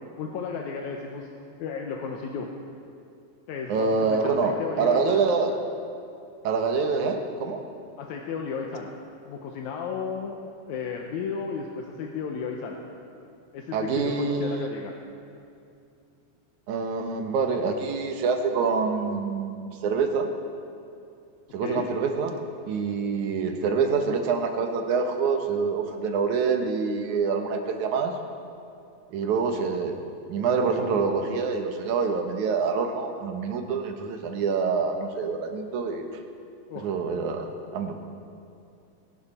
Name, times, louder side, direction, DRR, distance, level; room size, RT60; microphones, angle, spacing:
voice 1, 0.2-1.3 1.6-2.5 3.5-5.3 8.0-8.9 9.2-12.8 13.5-14.9 21.6-21.9 36.7-36.9, left 5 dB, 85° left, 1 dB, 2.2 m, -34 dB
voice 2, 3.7-5.6 6.4-7.6 13.7-14.7 16.7-20.3 21.5-28.1 29.1-29.9 30.3-36.1 36.7-38.0, right 5 dB, 85° right, 5 dB, 2.6 m, -26 dB
23.5 x 11.5 x 4.3 m, 2.6 s
omnidirectional pair, 3.3 m